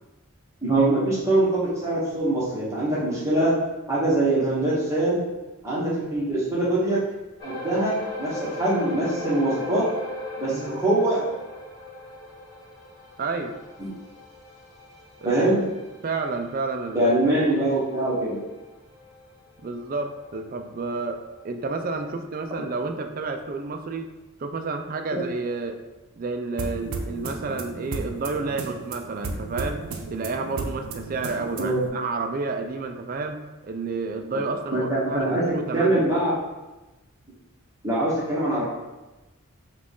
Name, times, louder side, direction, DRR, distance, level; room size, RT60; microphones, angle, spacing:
voice 1, 0.6-3.5 3.9-5.2 5.6-7.0 7.4-9.8 10.4-11.2 13.8-13.9 15.2-15.6 16.9-18.4 25.1-25.2 31.6-31.8 34.7-36.3 37.8-38.6, right 1 dB, 15° right, -9 dB, 1.2 m, -23 dB
sound 1, 7.4-20.1 20.4-20.6 21.2-21.3, left 2 dB, 20° left, 1.5 m, -38 dB
voice 2, 10.5-10.8 13.2-13.6 15.2-15.6 16.0-17.4 19.6-21.2 21.4-24.1 24.4-25.8 26.2-29.8 30.1-36.1, right 3 dB, 40° right, 5 dB, 0.4 m, -30 dB
sound 2, 26.6-31.9, right 3 dB, 90° right, 0.6 m, -34 dB
6.0 x 2.4 x 3.6 m, 1.1 s
head